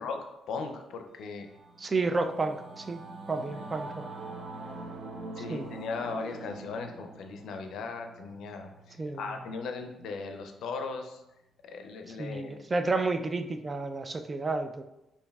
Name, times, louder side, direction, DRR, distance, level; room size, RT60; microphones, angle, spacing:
voice 1, 0.0-1.5 3.3-3.7 5.4-11.2 11.6-12.6, left 4 dB, 75° left, 5 dB, 0.4 m, -38 dB
Singing / Musical instrument, 1.2-10.9, right 2 dB, 50° right, 0.7 m, -45 dB
voice 2, 1.8-3.0 3.3-4.1 5.5-5.7 9.0-9.3 12.1-14.8, right 3 dB, 30° right, 9 dB, 0.3 m, -31 dB
5.1 x 2.5 x 2.3 m, 0.93 s
cardioid pair, 90°, 0 cm